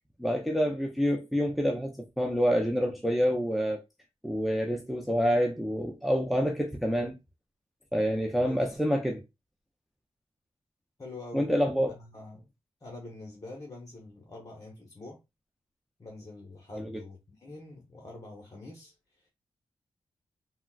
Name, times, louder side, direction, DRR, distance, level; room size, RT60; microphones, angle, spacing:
voice 1, 0.2-3.8 4.2-7.2 7.9-9.2 11.3-11.9 16.7-16.9, equal, ahead, 0.5 m, -27 dB
voice 2, 11.0-11.5 11.9-12.5 12.8-15.2 16.0-19.3, left 2 dB, 35° left, 0.9 m, -45 dB
3.7 x 2.1 x 2.3 m
cardioid pair, 80°, 11 cm